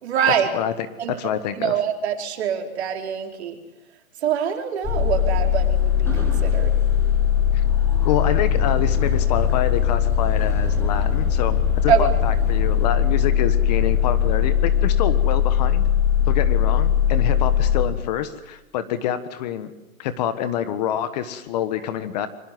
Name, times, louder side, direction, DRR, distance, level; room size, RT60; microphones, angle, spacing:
voice 1, 0.0-0.5 1.0-1.1 1.5-3.6 4.2-6.8 11.9-12.1, right 8 dB, 50° right, 3 dB, 4.6 m, -24 dB
voice 2, 1.2-1.7 7.5-7.6 8.0-15.9 16.3-19.7 20.0-22.3, left 10 dB, 30° left, 12 dB, 1.4 m, -26 dB
sound 1, 4.8-17.8, left 9 dB, 5° left, 6.5 m, -20 dB
26.0 x 24.5 x 7.8 m, 1.0 s
hypercardioid pair, 150°, 43 cm